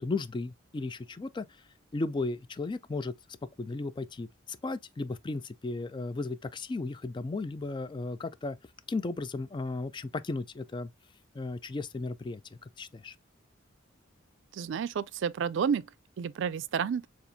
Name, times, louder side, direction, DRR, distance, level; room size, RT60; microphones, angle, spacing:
voice 1, 0.0-1.5 1.9-3.1 3.6-8.6 8.9-10.9 11.3-12.4 12.8-13.2, left 3 dB, 25° left, 0.3 m, -35 dB
voice 2, 14.5-15.8 16.2-17.0, right 7 dB, 65° right, 0.3 m, -30 dB
6.9 x 2.5 x 2.6 m
head